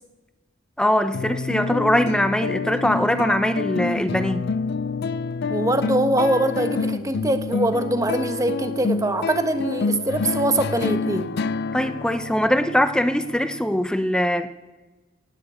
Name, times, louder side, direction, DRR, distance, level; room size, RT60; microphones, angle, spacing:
voice 1, 0.8-4.5 11.7-14.5, equal, 5° left, 11 dB, 0.6 m, -22 dB
sound 1, 1.1-13.9, left 4 dB, 60° left, 0.4 m, -28 dB
voice 2, 5.5-11.3, right 1 dB, 15° right, 8 dB, 1.1 m, -23 dB
18.0 x 6.5 x 8.2 m, 1.2 s
head